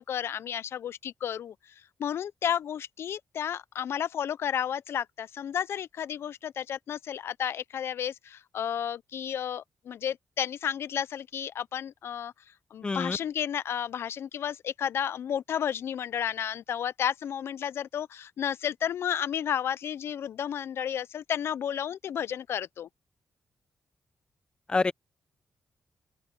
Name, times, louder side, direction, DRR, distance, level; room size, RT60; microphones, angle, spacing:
voice 1, 0.0-1.5 2.0-12.3 12.7-22.9, left 9 dB, 70° left, 0.3 m, -32 dB
voice 2, 12.8-13.2 24.7-24.9, left 3 dB, 20° left, 0.6 m, -26 dB
open air
wide cardioid pair, 165°, 4 cm